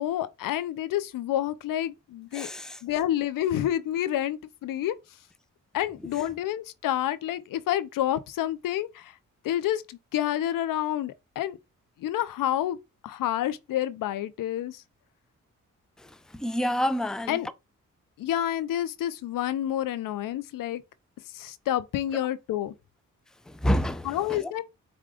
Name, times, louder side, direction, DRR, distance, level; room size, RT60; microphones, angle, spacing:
voice 1, 0.0-2.5 2.8-5.2 5.7-9.2 9.4-11.6 12.0-12.8 13.0-14.8 17.3-17.5 18.2-20.8 21.3-22.8 24.0-24.6, left 12 dB, 90° left, 0.5 m, -29 dB
voice 2, 2.3-2.8 16.0-16.1 16.3-17.4 23.5-24.5, equal, ahead, 0.5 m, -28 dB
4.9 x 2.3 x 3.7 m
cardioid pair, 65°, 32 cm